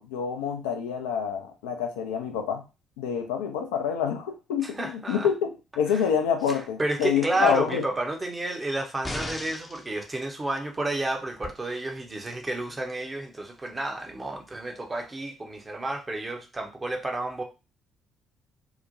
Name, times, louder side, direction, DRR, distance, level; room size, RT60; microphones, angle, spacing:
voice 1, 0.0-2.6 3.0-7.9, left 7 dB, 75° left, 5 dB, 0.3 m, -27 dB
voice 2, 4.6-5.3 5.9-6.1 6.5-17.4, right 2 dB, 25° right, 3 dB, 0.7 m, -31 dB
sound 1, 9.0-9.9 11.4-11.5, left 1 dB, 20° left, 0.6 m, -35 dB
2.8 x 2.1 x 2.5 m, 0.28 s
figure-of-eight pair, 45°, 0 cm